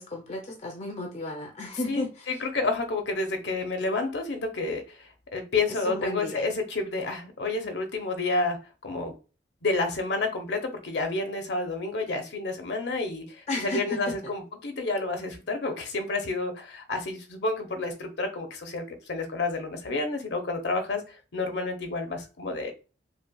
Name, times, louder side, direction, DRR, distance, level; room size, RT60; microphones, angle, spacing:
voice 1, 0.0-2.3 5.9-6.4 13.5-14.3, left 2 dB, 40° left, 0.5 m, -34 dB
voice 2, 1.9-8.6 8.8-9.1 9.6-22.7, left 3 dB, 70° left, 0.8 m, -30 dB
5.3 x 2.3 x 2.3 m
head